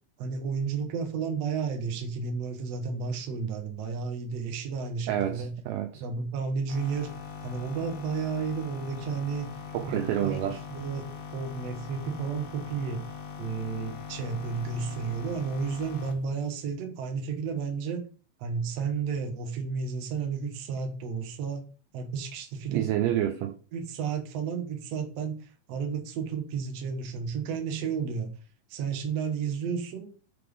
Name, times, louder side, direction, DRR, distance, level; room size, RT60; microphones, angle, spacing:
voice 1, 0.2-5.5 6.0-7.1 7.4-13.0 13.4-18.0 18.4-21.6 21.9-22.9 23.7-28.3 28.7-30.1, right 5 dB, 60° right, 1.8 m, -32 dB
voice 2, 5.1-6.0 9.7-10.6 22.7-23.6, right 11 dB, 80° right, 2.0 m, -28 dB
sound 1, 6.7-16.2, left 6 dB, 70° left, 1.5 m, -41 dB
9.6 x 3.4 x 3.6 m
omnidirectional pair, 4.1 m